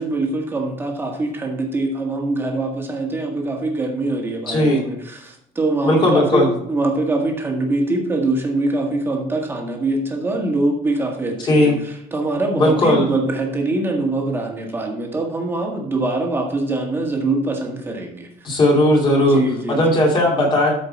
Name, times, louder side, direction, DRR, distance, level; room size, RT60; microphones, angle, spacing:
voice 1, 0.0-18.3 19.1-19.8, right 2 dB, 15° right, 1 dB, 1.7 m, -23 dB
voice 2, 4.5-4.8 5.8-6.5 11.4-11.8 12.6-13.1 18.4-19.4 19.7-20.7, left 1 dB, 30° left, -1 dB, 2.7 m, -16 dB
13.0 x 5.1 x 4.1 m, 0.75 s
cardioid pair, 160°, 16 cm